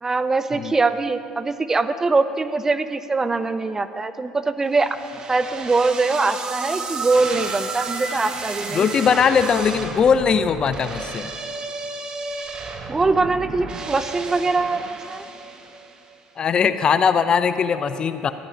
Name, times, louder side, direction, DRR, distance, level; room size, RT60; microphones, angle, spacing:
voice 1, 0.0-5.0 5.3-8.9 12.9-15.3, right 3 dB, 20° right, 12 dB, 0.4 m, -22 dB
sound 1, 4.8-16.1, right 3 dB, 40° right, 0.9 m, -32 dB
voice 2, 8.7-11.3 16.4-18.3, left 6 dB, 40° left, 12 dB, 0.4 m, -20 dB
14.5 x 11.0 x 2.8 m, 2.6 s
supercardioid pair, 85°, 2 cm